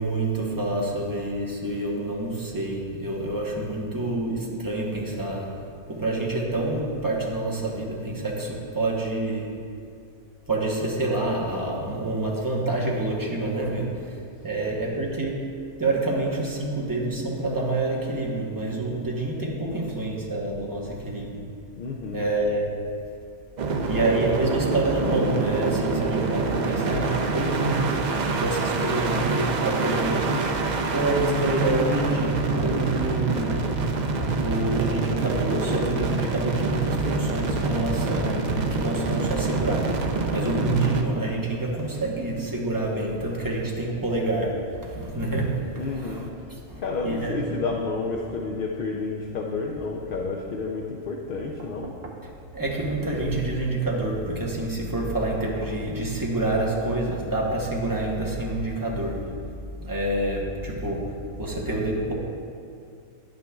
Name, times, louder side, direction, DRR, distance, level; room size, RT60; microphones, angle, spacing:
voice 1, 0.0-5.6 5.9-9.6 10.5-14.2 14.4-21.5 22.1-22.7 23.8-30.5 30.9-33.7 34.4-40.0 40.3-46.3 46.7-47.5 52.5-59.4 59.8-62.1, right 2 dB, 15° right, -3 dB, 0.9 m, -27 dB
voice 2, 21.8-22.3 45.7-46.3 46.8-52.0, left 3 dB, 65° left, 0 dB, 0.5 m, -30 dB
sound 1, 23.6-41.0, right 3 dB, 80° right, 0.4 m, -26 dB
sound 2, 51.6-52.3 55.2-55.9 57.5-57.6, right 4 dB, 55° right, 0.9 m, -44 dB
9.8 x 9.0 x 2.3 m, 2.4 s
omnidirectional pair, 1.5 m